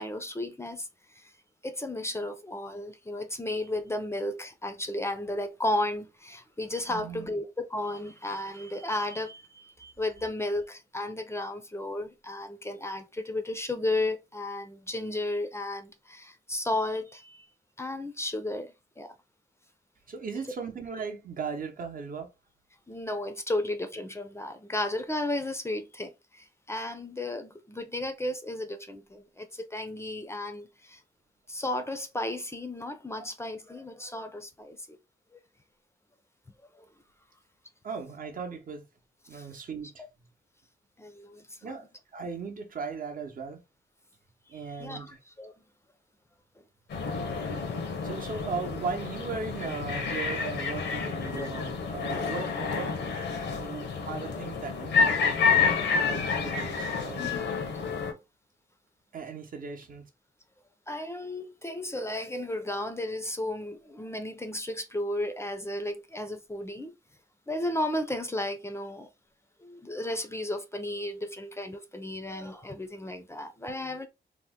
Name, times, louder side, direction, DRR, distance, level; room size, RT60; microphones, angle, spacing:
voice 1, 0.0-1.3 1.6-17.5 17.8-19.1 22.9-31.0 31.5-35.0 36.7-36.9 39.3-39.5 41.0-41.7 44.5-45.5 51.2-51.5 52.1-52.3 57.2-57.5 60.9-66.9 67.5-69.1 69.6-74.1, left 1 dB, 15° left, 0.4 m, -34 dB
voice 2, 6.9-7.4 20.1-22.3 37.8-38.9 39.3-40.0 41.6-41.9 42.1-43.6 44.5-45.2 47.3-52.9 53.4-55.0 55.5-57.3 59.1-60.0, right 5 dB, 50° right, 0.8 m, -38 dB
sound 1, 46.9-58.1, left 5 dB, 90° left, 0.8 m, -29 dB
2.9 x 2.1 x 3.4 m
cardioid pair, 95°, 18 cm